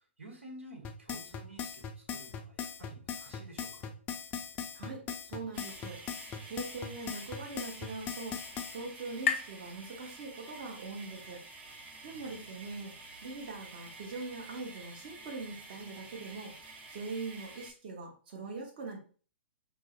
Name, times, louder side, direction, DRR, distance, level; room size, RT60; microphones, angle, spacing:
voice 1, 0.0-3.9 12.0-12.3, right 1 dB, 85° right, 1 dB, 1.1 m, -51 dB
sound 1, 0.8-8.8, left 7 dB, 25° left, 0.4 m, -39 dB
voice 2, 4.7-6.0 6.4-11.4 12.0-12.9 13.2-16.5 16.9-19.0, right 3 dB, 45° right, 0 dB, 1.0 m, -42 dB
sound 2, 5.5-17.7, right 3 dB, 20° right, 0.6 m, -50 dB
sound 3, 6.9-10.7, left 6 dB, 75° left, 0.5 m, -39 dB
4.5 x 2.0 x 2.4 m, 0.40 s
figure-of-eight pair, 115°, 7 cm